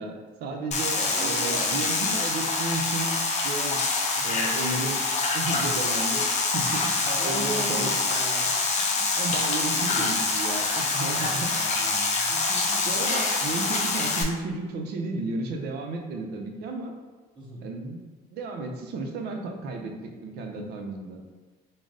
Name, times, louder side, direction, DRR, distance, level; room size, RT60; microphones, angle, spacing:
voice 1, 0.0-3.8 4.2-5.1 5.3-6.9 7.2-8.0 9.2-11.5 12.9-16.9 17.6-18.0 18.3-21.2, right 3 dB, 70° right, 3 dB, 0.5 m, -33 dB
sound 1, 0.7-14.2, left 3 dB, 45° left, 0.6 m, -26 dB
voice 2, 0.9-1.8 4.1-4.5 7.0-8.5 8.9-9.1 9.6-10.1 11.1-13.0 17.3-17.6, equal, 30° right, -6 dB, 1.3 m, -39 dB
3.7 x 2.0 x 3.6 m, 1.3 s
cardioid pair, 110°, 17 cm